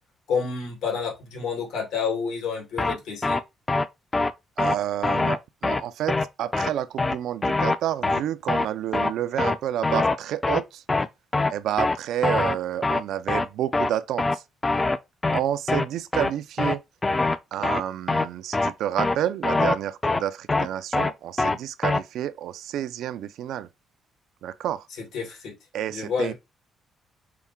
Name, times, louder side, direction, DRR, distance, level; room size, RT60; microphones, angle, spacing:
voice 1, 0.3-3.4 25.0-25.5 25.9-26.3, left 6 dB, 85° left, 2.5 m, -29 dB
sound 1, 2.8-2.9 3.2-3.4 3.7-3.8 4.1-4.3 4.6-4.7 5.0-5.4 5.6-5.8 6.1-6.2 6.5-6.7 7.0-7.1 7.4-7.7 8.0-8.2 8.5-8.7 8.9-9.1 9.4-9.6 9.8-10.1 10.4-10.6 10.9-11.1 11.3-11.5 11.8-12.0 12.2-12.6 12.8-13.0 13.3-13.4 13.7-13.9 14.2-14.3 14.6-15.0 15.2-15.4 15.7-15.8 16.1-16.3 16.6-16.7 17.0-17.4 17.6-17.8 18.1-18.2 18.5-18.7 19.0-19.1 19.4-19.7 20.0-20.2 20.5-20.7 20.9-21.1 21.4-21.6 21.8-22.0, left 3 dB, 20° left, 0.4 m, -23 dB
voice 2, 4.6-10.8 11.5-14.4 15.3-16.8 17.5-23.7 24.4-24.8 25.7-26.3, right 11 dB, 80° right, 0.4 m, -29 dB
5.7 x 2.2 x 3.6 m
cardioid pair, 90°, 0 cm